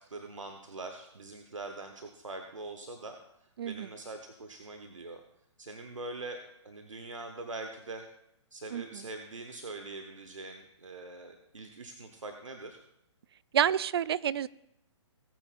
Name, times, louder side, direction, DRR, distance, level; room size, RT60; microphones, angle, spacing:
voice 1, 0.1-5.2 5.6-8.1 8.5-12.8, right 2 dB, 85° right, 5 dB, 1.1 m, -43 dB
voice 2, 8.7-9.0 13.5-14.5, right 9 dB, 55° right, 20 dB, 0.4 m, -29 dB
18.5 x 9.4 x 2.5 m, 0.77 s
figure-of-eight pair, 130°, 16 cm